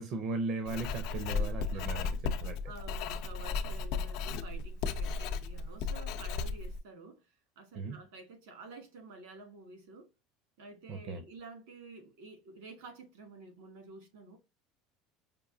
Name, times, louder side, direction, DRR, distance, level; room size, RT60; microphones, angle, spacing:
voice 1, 0.0-2.6 7.7-8.0 10.9-11.2, right 3 dB, 45° right, 0.6 m, -37 dB
Writing, 0.7-6.8, left 4 dB, 60° left, 0.5 m, -35 dB
voice 2, 1.1-10.1 10.6-14.4, right 3 dB, 85° right, 1.9 m, -51 dB
5.1 x 2.5 x 2.6 m
cardioid pair, 155°, 0 cm